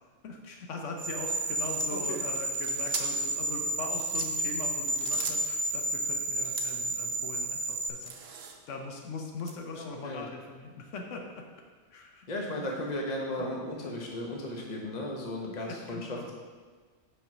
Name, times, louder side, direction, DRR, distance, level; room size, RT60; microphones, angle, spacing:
voice 1, 0.2-8.2 8.7-11.4 11.9-12.7 13.4-13.5 15.7-16.2, left 3 dB, 80° left, 2 dB, 1.1 m, -41 dB
sound 1, 1.0-7.9, right 2 dB, 65° right, 0.4 m, -31 dB
sound 2, 1.6-3.4 3.8-5.7 6.4-6.9 7.4-8.8 9.4-9.6, right 6 dB, 90° right, 1.0 m, -41 dB
voice 2, 1.9-2.2 9.7-10.3 12.3-16.3, left 1 dB, 40° left, -1 dB, 1.0 m, -35 dB
5.3 x 4.5 x 6.0 m, 1.5 s
omnidirectional pair, 1.3 m